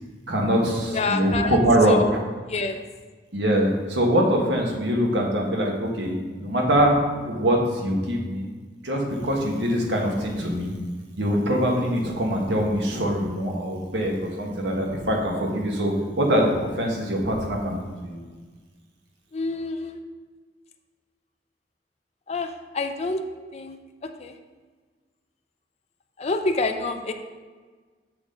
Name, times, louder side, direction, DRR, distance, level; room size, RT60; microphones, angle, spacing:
voice 1, 0.3-2.2 3.3-7.0 7.2-8.5 8.8-10.8 11.2-17.8 18.0-18.2, equal, 80° right, 0 dB, 1.5 m, -23 dB
voice 2, 0.9-1.6 1.9-2.1 2.5-2.8 19.3-20.0 22.3-23.2 23.5-23.8 24.2-24.3 26.2-27.1, left 3 dB, 35° left, 5 dB, 0.5 m, -27 dB
7.1 x 6.4 x 3.8 m, 1.4 s
head